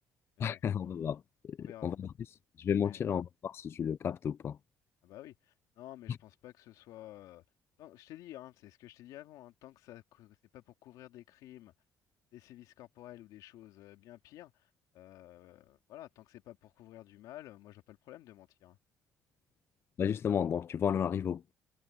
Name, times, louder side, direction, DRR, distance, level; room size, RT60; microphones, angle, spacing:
voice 1, 0.4-2.1 2.6-4.6 20.0-21.5, left 8 dB, 45° left, 0.4 m, -33 dB
voice 2, 1.6-1.9 2.8-3.1 5.0-7.4 7.8-11.7 12.3-18.8, left 14 dB, 85° left, 2.6 m, -52 dB
cardioid pair, 100°, 6 cm